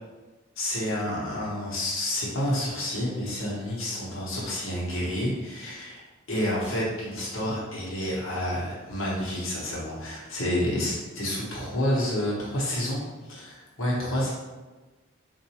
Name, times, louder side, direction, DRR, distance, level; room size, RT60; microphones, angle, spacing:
voice 1, 0.6-6.0 6.3-14.3, left 1 dB, 90° left, -6 dB, 1.1 m, -29 dB
3.8 x 2.6 x 2.9 m, 1.2 s
head